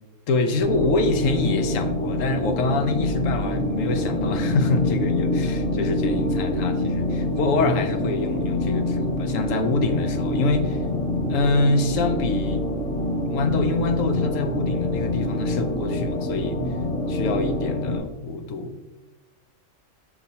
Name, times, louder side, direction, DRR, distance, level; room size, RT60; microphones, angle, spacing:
voice 1, 0.3-10.8 11.3-12.6 13.3-16.6 17.1-18.9, left 3 dB, 80° left, 8 dB, 1.0 m, -25 dB
sound 1, 0.6-18.0, left 1 dB, 50° left, 1.1 m, -25 dB
6.2 x 5.3 x 2.8 m, 1.1 s
omnidirectional pair, 1.3 m